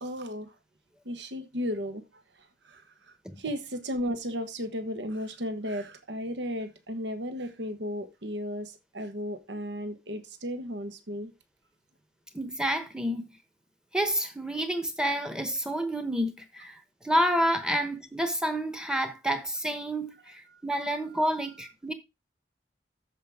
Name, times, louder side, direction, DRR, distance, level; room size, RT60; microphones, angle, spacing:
voice 1, 0.0-0.5 1.0-2.0 2.6-2.8 3.4-11.3 20.5-20.6, equal, 80° right, 1.3 m, -34 dB
voice 2, 12.3-13.3 13.9-16.8 17.0-21.9, equal, 5° right, 1.0 m, -29 dB
13.0 x 5.2 x 3.6 m
head